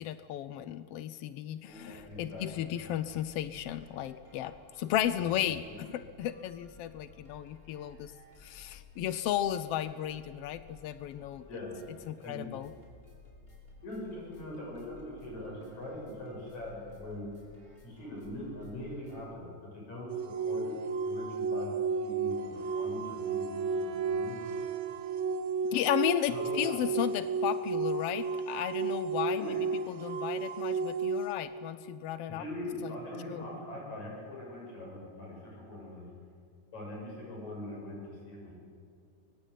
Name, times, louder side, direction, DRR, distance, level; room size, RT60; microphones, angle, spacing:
voice 1, 0.0-8.1 8.4-11.4 12.1-12.7 25.7-32.4 32.8-32.9 33.3-33.5, left 11 dB, 80° left, 13 dB, 1.3 m, -34 dB
voice 2, 1.7-2.7 11.5-11.8 12.2-12.4 13.8-17.3 17.8-20.8 21.0-24.4 26.3-26.7 29.3-29.6 32.4-36.1 36.7-38.6, left 1 dB, 60° left, -2 dB, 8.7 m, -42 dB
sound 1, 1.7-19.2, left 3 dB, 15° left, 5.0 m, -57 dB
sound 2, 20.1-31.3, right 4 dB, 55° right, 1.5 m, -33 dB
Wind instrument woodwind instrument, 22.4-26.0, right 10 dB, 85° right, 2.6 m, -48 dB
24.0 x 21.5 x 8.2 m, 2.3 s
omnidirectional pair, 3.6 m